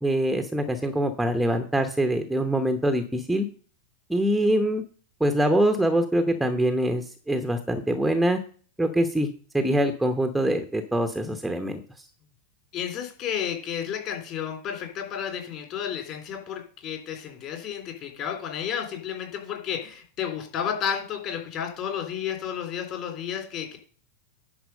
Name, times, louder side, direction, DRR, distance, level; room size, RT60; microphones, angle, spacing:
voice 1, 0.0-3.4 4.1-4.8 5.2-8.4 8.8-9.3 9.5-11.8, right 1 dB, 5° right, 6 dB, 0.9 m, -24 dB
voice 2, 12.7-23.8, left 8 dB, 40° left, 3 dB, 3.5 m, -32 dB
10.5 x 4.5 x 6.5 m, 0.42 s
figure-of-eight pair, 90°, 0 cm